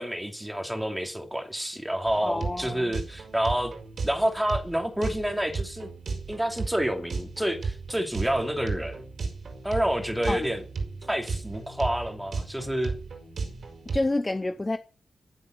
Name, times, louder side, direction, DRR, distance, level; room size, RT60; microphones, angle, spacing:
voice 1, 0.0-3.7 4.0-5.9 6.3-9.0 9.6-10.6 11.1-13.0, equal, 5° right, 2.7 m, -28 dB
sound 1, 2.1-14.1, right 4 dB, 70° right, 4.9 m, -35 dB
voice 2, 2.2-2.9 10.3-10.5 13.9-14.8, left 2 dB, 20° left, 0.8 m, -28 dB
17.0 x 7.8 x 7.9 m
wide cardioid pair, 145°, 0 cm